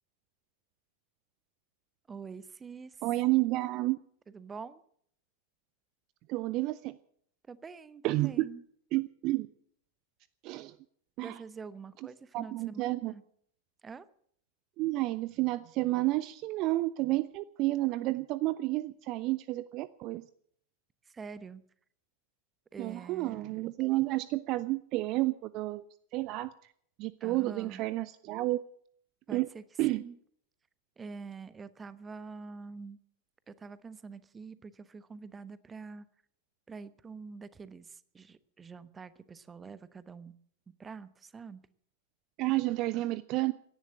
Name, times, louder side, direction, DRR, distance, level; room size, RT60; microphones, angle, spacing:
voice 1, 2.1-3.0 4.3-4.8 7.5-8.6 11.2-13.2 13.8-14.1 21.1-21.6 22.7-23.6 27.2-27.8 29.3-29.6 30.0-30.2 31.0-33.0 33.5-36.1 36.7-40.3 40.8-41.6, right 5 dB, 15° right, 17 dB, 1.0 m, -46 dB
voice 2, 3.0-4.0 6.3-7.0 8.0-8.5 8.9-9.5 10.4-10.8 11.2-11.4 12.3-13.1 14.8-20.2 22.8-25.8 26.1-26.5 27.0-28.6 29.3-29.5 29.8-30.0 42.4-43.5, right 18 dB, 40° right, 18 dB, 0.6 m, -30 dB
17.0 x 11.0 x 7.8 m, 0.63 s
figure-of-eight pair, 90°, 0 cm